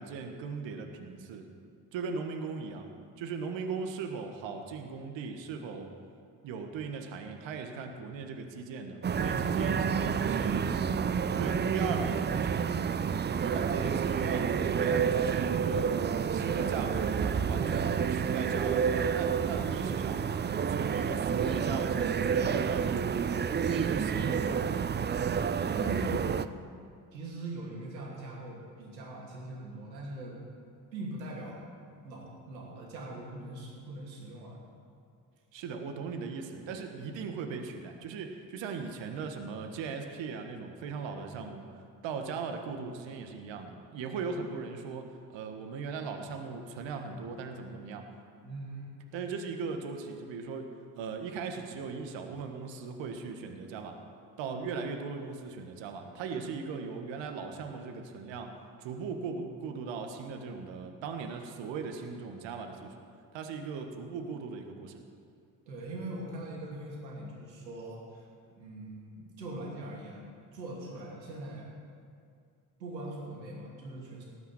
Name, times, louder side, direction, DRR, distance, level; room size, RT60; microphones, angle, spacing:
voice 1, 0.0-1.5 1.9-2.9 3.2-5.9 6.4-10.6 11.4-12.9 13.4-16.0 16.3-20.3 20.7-23.3 23.7-24.9 35.5-41.6 42.0-48.1 49.1-50.7 51.0-54.0 54.4-58.5 58.8-62.9 63.3-65.0, right 5 dB, 60° right, 5 dB, 1.6 m, -38 dB
sound 1, 9.0-26.5, right 7 dB, 20° right, 0.5 m, -29 dB
voice 2, 9.9-11.9 25.8-26.2 27.1-30.4 30.9-31.6 31.9-34.6 48.4-48.9 65.7-71.7 72.8-74.2, right 1 dB, 85° right, -2 dB, 2.7 m, -42 dB
18.0 x 6.1 x 7.8 m, 2.3 s
hypercardioid pair, 50°, 50 cm